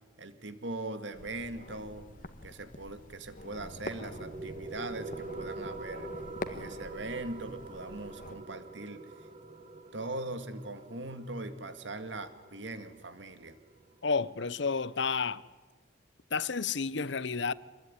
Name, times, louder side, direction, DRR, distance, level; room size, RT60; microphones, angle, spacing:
voice 1, 0.2-2.1 2.4-6.1 6.5-9.0 9.9-13.6, right 2 dB, 65° right, 2.1 m, -40 dB
sound 1, 1.1-8.4, left 2 dB, 45° left, 1.6 m, -46 dB
sound 2, 3.4-14.4, right 2 dB, 35° right, 1.5 m, -45 dB
voice 2, 14.0-15.4 16.3-17.5, left 5 dB, 60° left, 0.8 m, -31 dB
26.5 x 21.5 x 9.7 m
head